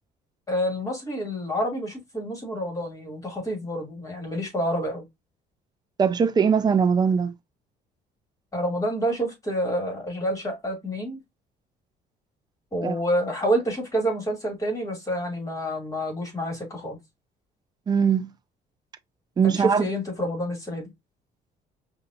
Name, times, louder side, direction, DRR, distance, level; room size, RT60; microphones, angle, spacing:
voice 1, 0.5-5.0 8.5-11.2 12.7-17.0 19.4-20.9, equal, 20° left, 2.8 m, -28 dB
voice 2, 6.0-7.3 12.8-13.0 17.9-18.3 19.4-19.9, right 6 dB, 25° right, 0.5 m, -21 dB
5.4 x 2.7 x 2.7 m
cardioid pair, 110°, 17 cm